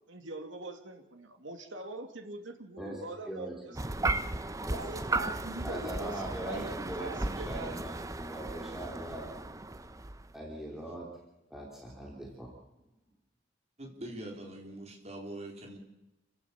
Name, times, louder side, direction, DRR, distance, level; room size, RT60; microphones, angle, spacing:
voice 1, 0.1-4.1 4.6-7.8, right 2 dB, 85° right, 5 dB, 2.6 m, -43 dB
voice 2, 2.8-3.8 4.6-5.0 5.6-9.3 10.3-11.1 11.5-12.6, right 1 dB, ahead, -3 dB, 3.2 m, -41 dB
sound 1, 3.7-10.3, right 2 dB, 15° right, 0.7 m, -35 dB
voice 3, 13.8-15.8, right 1 dB, 35° right, 1 dB, 4.3 m, -43 dB
28.5 x 15.5 x 7.2 m, 0.98 s
head